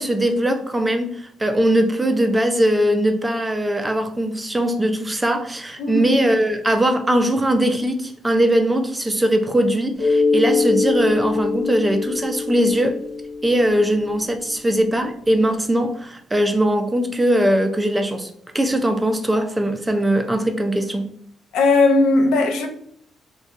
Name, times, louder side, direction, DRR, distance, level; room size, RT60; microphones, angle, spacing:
voice 1, 0.0-13.0 13.4-18.3 18.5-21.1, right 1 dB, 15° right, 0.4 m, -20 dB
Mallet percussion, 10.0-14.4, left 4 dB, 45° left, 0.8 m, -23 dB
voice 2, 21.5-22.7, left 3 dB, 90° left, 0.4 m, -17 dB
2.6 x 2.2 x 2.3 m
cardioid pair, 90°, 0 cm